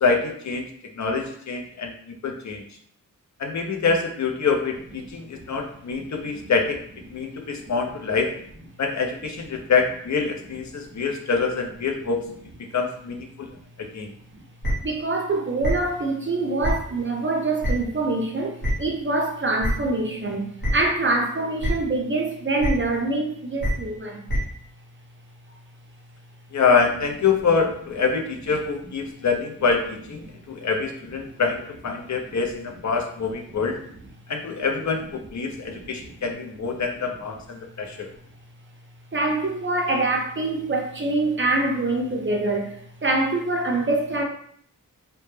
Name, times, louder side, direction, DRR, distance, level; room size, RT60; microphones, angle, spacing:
voice 1, 0.0-1.9 2.2-2.6 3.4-6.8 7.1-8.3 8.8-12.3 12.7-13.5 13.8-14.1 26.5-33.8 34.3-38.1, left 5 dB, 55° left, 3 dB, 0.5 m, -25 dB
voice 2, 5.0-5.5 5.9-6.1 9.6-9.7 13.5-13.6 14.8-24.2 30.2-30.3 32.3-32.4 35.6-36.1 39.1-44.2, right 2 dB, 35° right, 1 dB, 0.5 m, -25 dB
sound 1, 14.6-14.7 15.6-15.7 16.6-16.7 17.6-17.7 18.6-18.7 19.6-19.7 20.6-20.7 21.6-21.7 22.6-22.7 23.6-23.7 24.3-24.4, equal, 80° left, 1.0 m, -24 dB
2.1 x 2.0 x 3.0 m, 0.62 s
wide cardioid pair, 70°, 35 cm